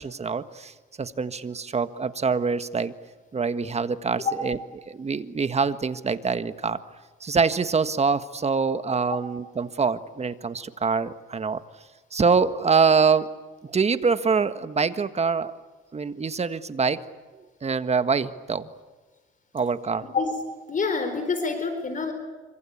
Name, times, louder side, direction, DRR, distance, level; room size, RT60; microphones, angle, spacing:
voice 1, 0.0-2.9 3.3-4.6 4.9-6.8 7.2-11.6 12.1-13.3 13.6-15.5 15.9-17.0 17.3-18.7 19.5-20.1, right 5 dB, 35° right, 11 dB, 1.6 m, -25 dB
voice 2, 20.7-22.1, left 4 dB, 40° left, 8 dB, 4.1 m, -26 dB
26.5 x 25.0 x 8.7 m, 1.2 s
cardioid pair, 90°, 20 cm